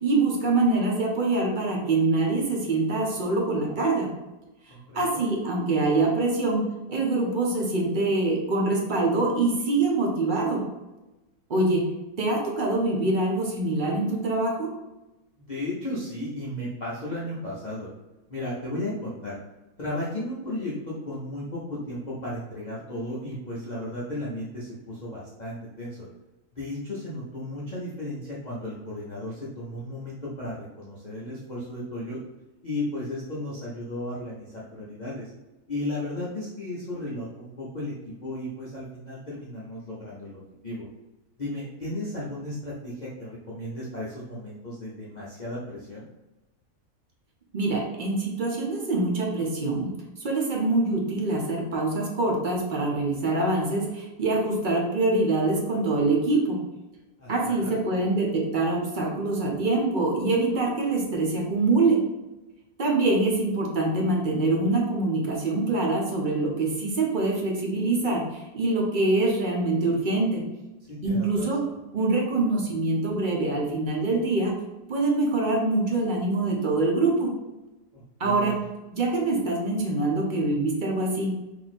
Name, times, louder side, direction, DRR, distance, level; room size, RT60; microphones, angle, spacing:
voice 1, 0.0-4.1 4.9-10.6 11.5-11.8 12.2-14.7 47.5-49.9 50.2-56.6 57.3-62.0 62.8-70.4 71.0-71.6 71.9-74.5 74.9-77.3 78.2-78.6 78.9-81.4, right 2 dB, 45° right, -1 dB, 0.6 m, -24 dB
voice 2, 4.7-5.3 15.4-17.9 18.3-19.4 19.8-26.1 26.5-32.2 32.6-35.3 35.7-40.9 41.4-46.1 57.2-57.8 70.9-71.8 77.9-78.6, left 1 dB, 40° left, -7 dB, 0.7 m, -35 dB
3.0 x 2.7 x 4.1 m, 1.0 s
omnidirectional pair, 1.5 m